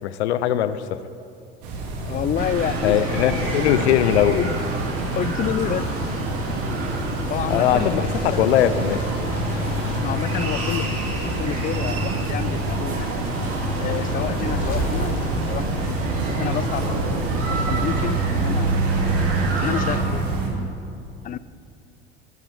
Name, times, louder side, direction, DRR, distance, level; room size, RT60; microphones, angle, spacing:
voice 1, 0.0-1.0 2.8-4.4 7.5-9.0, left 11 dB, 75° left, 14 dB, 0.7 m, -20 dB
sound 1, 1.6-20.5, right 2 dB, 60° right, 2.6 m, -26 dB
voice 2, 2.0-3.1 3.6-4.5 5.1-5.9 7.3-8.5 9.9-13.2 13.8-18.8 19.6-20.7 21.2-21.4, left 10 dB, 25° left, 17 dB, 0.4 m, -30 dB
sound 2, 2.4-20.0, right 2 dB, 40° right, 2.6 m, -30 dB
Ocean / Boat Water vehicle, 7.3-17.0, left 6 dB, 50° left, 1.2 m, -42 dB
15.0 x 12.5 x 3.6 m, 2.5 s
figure-of-eight pair, 70°, 33 cm